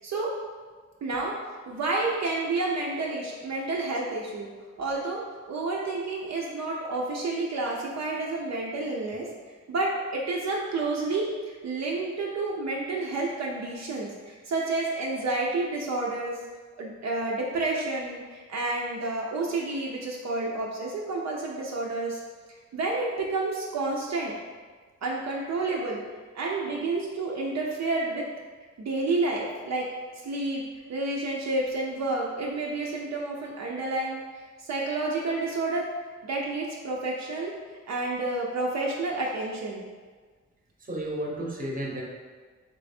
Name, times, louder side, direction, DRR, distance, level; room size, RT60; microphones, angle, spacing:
voice 1, 1.0-1.4 1.7-4.5 4.8-5.2 5.5-9.3 9.7-16.4 16.8-22.2 22.7-24.3 25.0-26.0 26.3-28.3 28.8-29.8 30.2-30.6 30.9-34.2 34.6-35.9 36.2-37.5 37.9-39.8, right 2 dB, 65° right, -3 dB, 0.6 m, -30 dB
voice 2, 40.8-42.0, right 1 dB, 30° right, -2 dB, 0.9 m, -32 dB
3.3 x 3.0 x 4.2 m, 1.5 s
wide cardioid pair, 120°, 30 cm